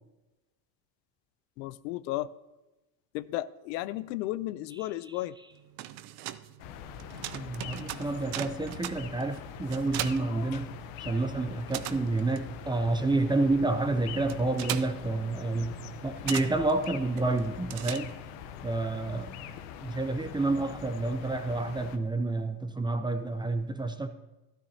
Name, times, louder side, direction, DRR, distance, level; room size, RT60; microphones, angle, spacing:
voice 1, 1.6-2.3 3.1-5.3 10.3-10.6 11.1-11.2, left 16 dB, 85° left, 0.6 m, -34 dB
sound 1, 5.5-11.1 11.4-18.5, right 13 dB, 55° right, 0.6 m, -40 dB
sound 2, 6.6-22.0, left 9 dB, 70° left, 1.0 m, -43 dB
voice 2, 7.3-10.7 11.0-18.1 18.6-19.3 19.8-24.1, right 2 dB, 10° right, 0.4 m, -29 dB
13.0 x 12.5 x 2.8 m
supercardioid pair, 110°, 48 cm